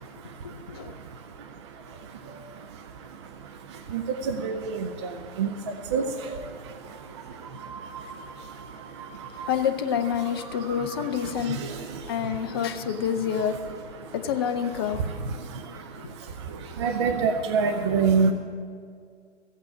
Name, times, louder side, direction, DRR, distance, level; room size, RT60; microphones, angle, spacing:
voice 1, 0.4-0.9 9.5-11.6 12.1-13.6 14.1-15.1, left 8 dB, 20° left, 7 dB, 0.5 m, -28 dB
voice 2, 16.8-18.3, right 5 dB, 25° right, 7 dB, 0.5 m, -23 dB
15.0 x 8.1 x 8.3 m, 2.2 s
figure-of-eight pair, 135°, 35 cm